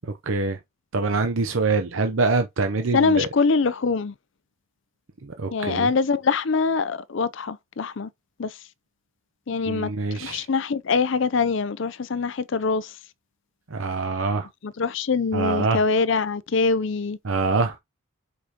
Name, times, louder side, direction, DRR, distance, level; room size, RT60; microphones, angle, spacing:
voice 1, 0.0-0.6 0.9-3.3 5.2-5.9 9.7-10.5 13.7-14.5 15.3-15.8 17.2-17.8, right 3 dB, 65° right, 0.7 m, -25 dB
voice 2, 2.9-4.1 5.5-8.1 8.4-8.6 9.5-9.9 10.2-13.0 14.6-17.2, left 4 dB, 60° left, 0.5 m, -23 dB
6.7 x 4.9 x 2.9 m
head